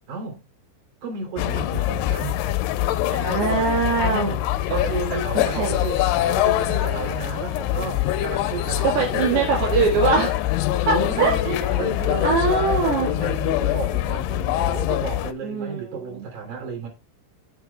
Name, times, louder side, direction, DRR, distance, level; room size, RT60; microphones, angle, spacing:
voice 1, 0.1-0.4 1.0-2.4 4.0-4.4 4.8-9.9 10.9-16.9, right 4 dB, 45° right, 4.2 m, -33 dB
sound 1, 1.4-15.3, left 14 dB, 80° left, 2.5 m, -24 dB
voice 2, 3.1-4.4 4.7-5.8 8.8-10.4 10.9-11.8 12.2-13.1 15.4-16.3, right 4 dB, 65° right, 3.8 m, -23 dB
14.5 x 6.6 x 2.3 m
omnidirectional pair, 5.2 m